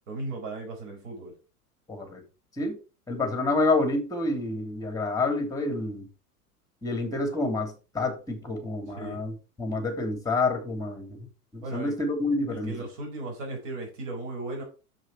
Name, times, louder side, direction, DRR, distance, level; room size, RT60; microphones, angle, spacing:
voice 1, 0.1-1.3 9.0-9.2 11.6-12.0 12.5-14.6, right 2 dB, 50° right, 0 dB, 5.2 m, -36 dB
voice 2, 1.9-2.2 2.5-2.8 3.1-6.1 6.8-11.3 11.5-12.9, left 2 dB, 5° left, 5 dB, 3.0 m, -28 dB
7.8 x 7.4 x 4.8 m, 0.33 s
figure-of-eight pair, 90°, 46 cm